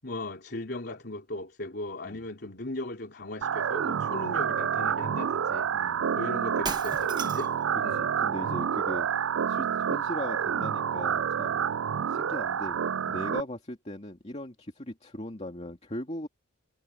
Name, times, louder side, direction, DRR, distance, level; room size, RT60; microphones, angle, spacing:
voice 1, 0.0-7.5 7.8-8.1, left 1 dB, 50° left, 3.6 m, -38 dB
sound 1, 3.4-13.4, right 8 dB, 60° right, 0.4 m, -28 dB
voice 2, 5.7-6.1 8.0-9.1 9.5-11.6 12.1-12.8 13.1-16.3, left 1 dB, 30° left, 2.4 m, -39 dB
Shatter, 6.6-7.6, right 4 dB, 20° right, 1.2 m, -36 dB
head